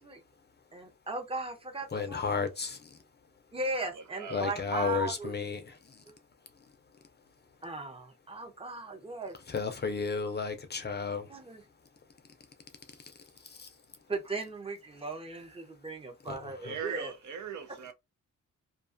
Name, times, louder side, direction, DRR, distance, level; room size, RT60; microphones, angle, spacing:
voice 1, 0.7-2.2 3.5-5.3 7.6-9.3 11.3-11.6 14.1-17.1, right 2 dB, 20° right, 0.6 m, -37 dB
voice 2, 1.9-3.0 4.3-6.0 9.5-11.4 13.0-13.7 16.3-16.8, left 5 dB, 35° left, 0.5 m, -34 dB
voice 3, 3.9-5.0 16.6-17.9, right 7 dB, 70° right, 0.6 m, -41 dB
2.4 x 2.3 x 2.5 m
wide cardioid pair, 130°, 31 cm